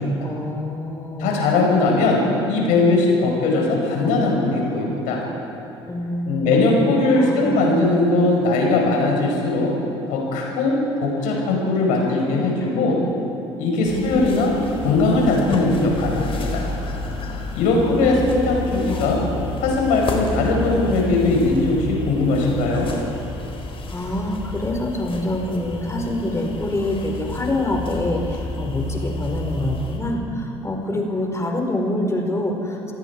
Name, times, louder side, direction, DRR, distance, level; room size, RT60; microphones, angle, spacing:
voice 1, 0.2-1.3 5.9-7.7 11.3-11.5 12.0-13.0 13.9-14.3 17.7-18.2 18.7-19.1 23.9-32.9, left 1 dB, 20° left, 2 dB, 4.8 m, -26 dB
voice 2, 1.2-2.2 2.5-5.2 6.3-9.7 10.1-13.0 13.6-14.5 14.8-16.6 17.5-19.2 19.6-22.9, left 2 dB, 65° left, -1 dB, 5.2 m, -19 dB
sound 1, 13.9-30.0, left 2 dB, 40° left, 4.5 m, -31 dB
29.0 x 18.5 x 4.8 m, 2.8 s
figure-of-eight pair, 55°, 14 cm